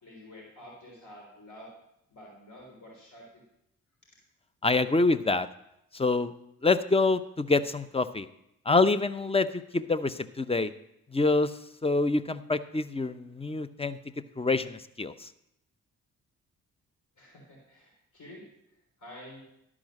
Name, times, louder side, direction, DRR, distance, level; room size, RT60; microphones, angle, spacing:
voice 1, 0.0-1.7 2.1-3.4 17.2-18.4 19.0-19.4, left 1 dB, 55° left, -2 dB, 3.6 m, -49 dB
voice 2, 4.6-5.5 5.9-6.3 6.6-8.3 8.7-10.7 11.1-11.5 11.8-14.0 14.4-15.3, left 3 dB, 15° left, 14 dB, 0.6 m, -26 dB
12.0 x 4.9 x 6.3 m, 0.80 s
hypercardioid pair, 45°, 36 cm